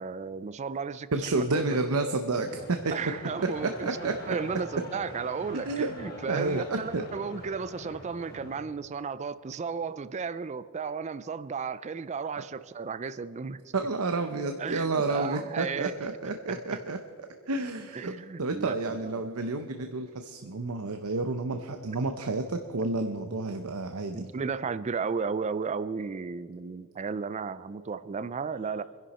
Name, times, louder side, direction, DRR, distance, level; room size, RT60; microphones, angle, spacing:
voice 1, 0.0-1.8 2.9-13.6 14.6-15.9 16.5-16.8 17.9-19.0 24.1-28.8, right 5 dB, 30° right, 15 dB, 0.4 m, -34 dB
voice 2, 1.1-2.9 3.8-4.4 5.7-5.9 6.3-7.0 12.4-12.5 13.7-17.0 17.5-18.1 18.4-24.3 28.7-28.8, right 3 dB, 85° right, 6 dB, 0.8 m, -30 dB
sound 1, 2.3-8.6, left 1 dB, 45° left, 3.1 m, -45 dB
26.5 x 11.0 x 4.2 m, 2.1 s
head